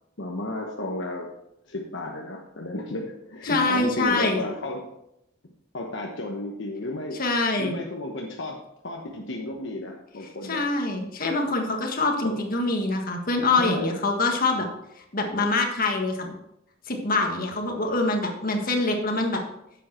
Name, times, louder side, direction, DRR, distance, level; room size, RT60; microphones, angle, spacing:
voice 1, 0.2-1.3 1.6-4.8 5.7-7.2 7.6-8.6 8.8-10.6 12.2-12.4 13.6-13.9, left 2 dB, 65° left, 0 dB, 1.1 m, -33 dB
voice 2, 3.4-4.4 7.2-7.8 10.4-14.7 15.1-16.3 16.9-19.4, left 3 dB, 45° left, 2 dB, 1.6 m, -25 dB
10.0 x 7.4 x 4.4 m, 0.81 s
head